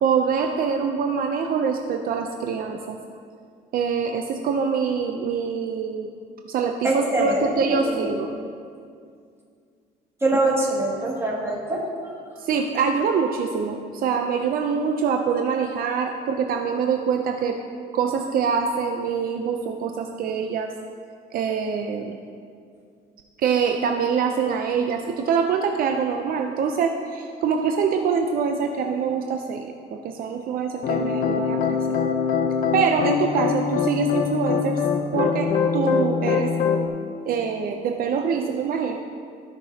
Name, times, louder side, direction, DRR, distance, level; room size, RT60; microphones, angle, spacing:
voice 1, 0.0-3.0 3.7-6.1 6.5-8.3 12.4-17.6 17.9-20.7 21.3-22.2 23.4-31.8 32.7-34.8 35.1-36.5 37.2-39.0, right 6 dB, 60° right, 3 dB, 0.6 m, -24 dB
voice 2, 6.8-8.1 10.2-11.8, right 2 dB, 15° right, -4 dB, 2.2 m, -24 dB
sound 1, 30.8-36.9, left 6 dB, 60° left, 0.7 m, -23 dB
15.5 x 6.0 x 2.8 m, 2.3 s
cardioid pair, 110°, 17 cm